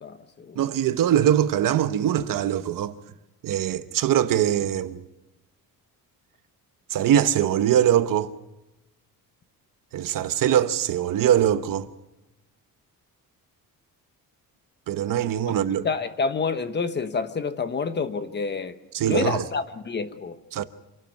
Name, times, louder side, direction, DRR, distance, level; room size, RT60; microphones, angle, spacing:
voice 1, 0.0-0.6 15.8-18.8 19.1-20.6, left 5 dB, 30° left, 1.1 m, -28 dB
voice 2, 0.6-2.9 3.4-5.0 6.9-8.3 9.9-11.9 14.9-15.9 18.9-19.4 20.5-20.6, right 10 dB, 65° right, 1.0 m, -22 dB
26.5 x 12.5 x 9.2 m
cardioid pair, 165°, 36 cm